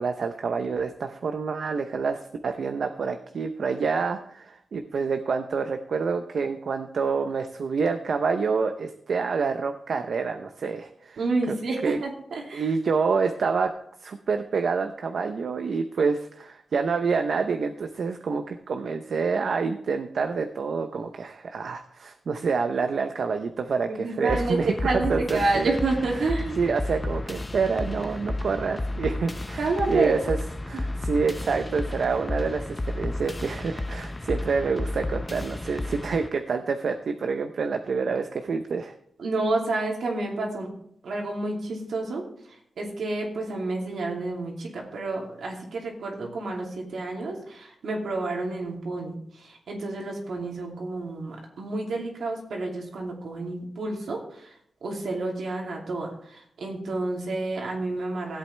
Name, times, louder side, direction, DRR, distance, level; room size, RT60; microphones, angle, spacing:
voice 1, 0.0-11.2 11.5-11.6 11.8-12.0 12.5-13.7 14.0-25.7 26.6-30.4 30.6-38.9, right 5 dB, 70° right, 6 dB, 0.7 m, -27 dB
voice 2, 11.2-12.7 23.9-26.6 29.6-30.1 39.2-40.7 41.0-42.2 42.5-54.5 54.8-58.4, right 2 dB, 85° right, -1 dB, 2.7 m, -29 dB
sound 1, 24.3-36.3, left 2 dB, 20° left, 0.5 m, -32 dB
16.5 x 8.3 x 3.3 m, 0.70 s
wide cardioid pair, 115°, 0 cm